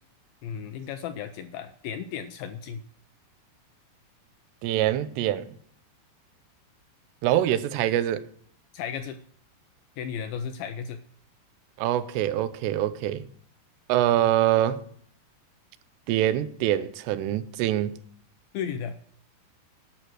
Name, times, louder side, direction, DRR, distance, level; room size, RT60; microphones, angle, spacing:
voice 1, 0.4-2.8 8.7-9.2 10.0-11.0 18.5-19.0, left 7 dB, 85° left, 2.2 m, -34 dB
voice 2, 4.6-5.6 7.2-8.2 11.8-13.3 13.9-14.8 16.1-18.0, right 12 dB, 90° right, 2.9 m, -24 dB
11.5 x 6.2 x 8.0 m
omnidirectional pair, 4.8 m